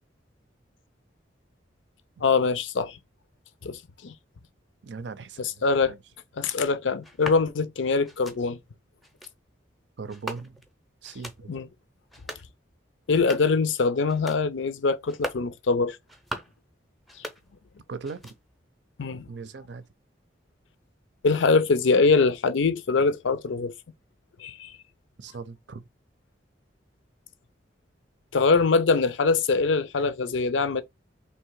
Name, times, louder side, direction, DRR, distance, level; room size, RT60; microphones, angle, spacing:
voice 1, 2.2-3.0 3.6-4.1 5.4-5.9 6.4-8.6 11.5-11.7 13.1-16.0 19.0-19.3 21.2-23.7 24.4-24.7 28.3-30.8, left 4 dB, 80° left, 0.5 m, -23 dB
voice 2, 4.8-5.5 5.9-6.0 10.0-10.6 11.0-11.5 17.9-18.3 19.3-19.8 25.2-25.8, right 4 dB, 65° right, 0.5 m, -39 dB
sound 1, 7.0-7.4 8.0-8.4 9.0-9.3 10.1-10.7 11.0-11.4 12.0-12.5 13.0-13.6 14.0-14.4 15.0-15.5 16.0-16.6 17.0-17.8 18.0-18.6, right 1 dB, ahead, 0.6 m, -39 dB
3.3 x 2.8 x 4.6 m
head